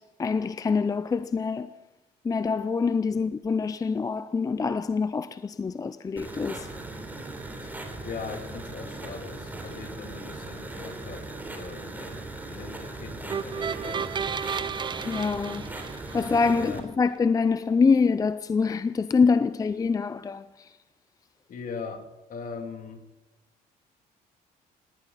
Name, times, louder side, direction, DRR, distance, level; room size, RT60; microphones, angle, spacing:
voice 1, 0.0-1.7 2.2-6.7 15.0-15.7 16.1-20.8, left 5 dB, 20° left, 0.5 m, -25 dB
sound 1, 6.2-16.8, right 2 dB, 10° right, 3.6 m, -39 dB
voice 2, 7.6-12.2 12.5-14.5 16.5-16.8 21.5-23.0, left 5 dB, 55° left, 2.8 m, -41 dB
sound 2, 13.3-16.5, right 6 dB, 25° right, 0.5 m, -33 dB
19.0 x 18.0 x 4.1 m
cardioid pair, 110°, 17 cm